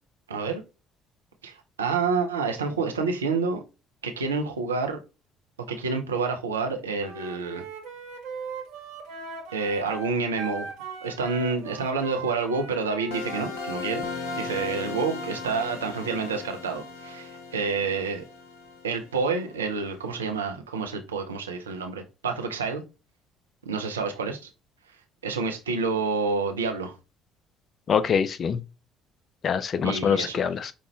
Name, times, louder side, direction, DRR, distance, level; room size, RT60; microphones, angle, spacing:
voice 1, 0.3-0.6 1.4-3.6 4.0-5.0 5.7-7.6 9.5-10.7 11.0-14.0 14.3-18.2 18.8-22.8 23.6-24.5 25.2-26.9 29.8-30.4, right 4 dB, 80° right, 0.6 m, -28 dB
Wind instrument woodwind instrument, 7.0-13.8, right 4 dB, 60° right, 0.9 m, -39 dB
sound 1, 13.1-19.8, left 4 dB, 70° left, 0.8 m, -37 dB
voice 2, 27.9-28.6 29.4-30.7, left 7 dB, 40° left, 0.4 m, -24 dB
5.1 x 2.5 x 3.1 m
figure-of-eight pair, 55°, 0 cm